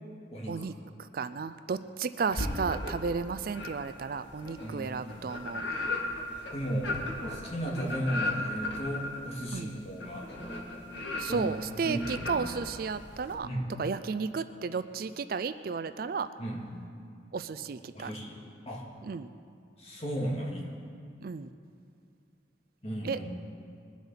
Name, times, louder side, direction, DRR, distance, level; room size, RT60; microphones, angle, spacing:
voice 1, 0.3-0.6 4.6-5.0 6.5-6.9 7.3-10.3 11.3-11.5 11.8-12.4 13.4-13.7 16.4-16.7 17.9-18.4 18.7-18.9 19.8-20.6 22.8-23.3, right 1 dB, 35° left, -2 dB, 2.3 m, -35 dB
voice 2, 1.0-5.6 9.5-9.8 11.2-13.5 13.8-16.3 17.3-18.1 19.0-19.3 21.2-21.5 23.0-23.3, right 5 dB, 50° right, 12 dB, 0.4 m, -33 dB
sound 1, 2.3-3.1 3.5-13.3, left 2 dB, 75° left, 2.0 m, -36 dB
21.5 x 7.3 x 5.7 m, 2.3 s
head